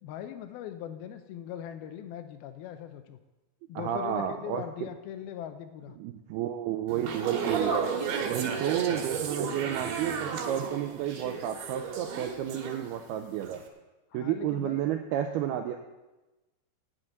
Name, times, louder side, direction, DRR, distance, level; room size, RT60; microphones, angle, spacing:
voice 1, 0.0-3.2 3.7-6.0 14.1-14.9, left 10 dB, 90° left, 8 dB, 2.1 m, -40 dB
voice 2, 3.8-4.9 6.0-7.7 8.2-13.6 14.1-15.8, right 10 dB, 85° right, 6 dB, 2.2 m, -31 dB
sound 1, 6.9-13.1 13.4-13.7, right 5 dB, 65° right, 2.9 m, -33 dB
9.0 x 8.0 x 8.9 m, 1.1 s
omnidirectional pair, 5.2 m